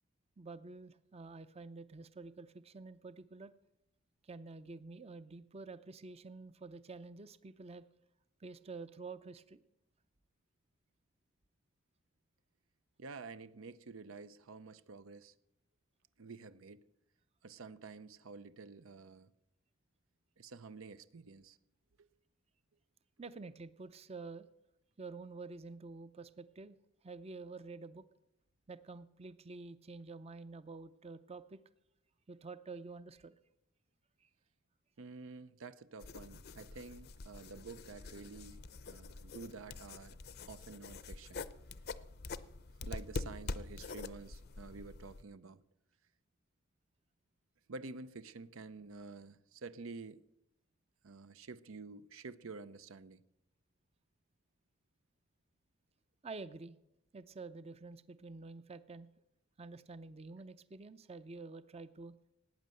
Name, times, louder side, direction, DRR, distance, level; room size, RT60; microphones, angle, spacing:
voice 1, 0.4-3.5 4.2-7.8 8.4-9.6 23.2-24.5 25.0-26.8 27.0-28.0 28.7-31.6 32.3-33.3 34.2-34.3 56.2-56.8 57.1-59.1 59.6-62.1, right 3 dB, 30° right, 0.5 m, -49 dB
voice 2, 13.0-15.3 16.2-16.8 17.4-19.3 20.4-21.6 22.0-22.1 35.0-40.2 40.4-41.5 42.8-45.6 47.7-50.2 51.0-53.2, right 4 dB, 90° right, 0.7 m, -50 dB
sound 1, 36.0-45.2, left 3 dB, 50° left, 0.6 m, -45 dB
17.5 x 9.2 x 7.7 m
head